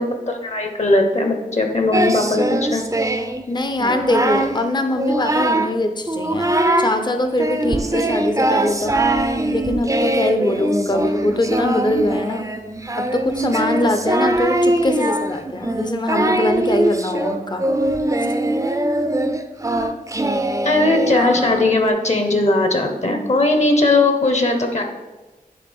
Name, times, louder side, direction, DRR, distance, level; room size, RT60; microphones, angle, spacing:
voice 1, 0.0-2.8 20.6-24.8, left 2 dB, 50° left, 4 dB, 1.0 m, -18 dB
Singing, 1.9-3.4 3.8-4.6 4.9-5.8 6.1-7.0 7.4-21.9, right 1 dB, 20° right, 0.5 m, -21 dB
voice 2, 3.5-8.9 9.5-12.5 13.0-17.6, left 1 dB, 30° left, 7 dB, 0.6 m, -22 dB
9.8 x 3.8 x 3.5 m, 1.2 s
wide cardioid pair, 50°, 15 cm